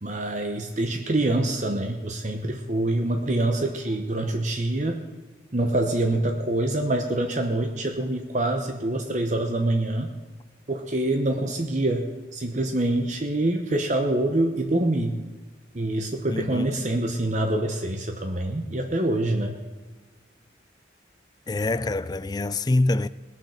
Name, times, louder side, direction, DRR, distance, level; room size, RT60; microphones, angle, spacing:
voice 1, 0.0-5.0 5.5-10.1 10.7-15.2 15.7-19.6, right 1 dB, 40° right, 0.9 m, -25 dB
voice 2, 16.3-16.9 21.5-23.1, left 2 dB, 20° left, 0.3 m, -25 dB
20.0 x 7.2 x 6.5 m
head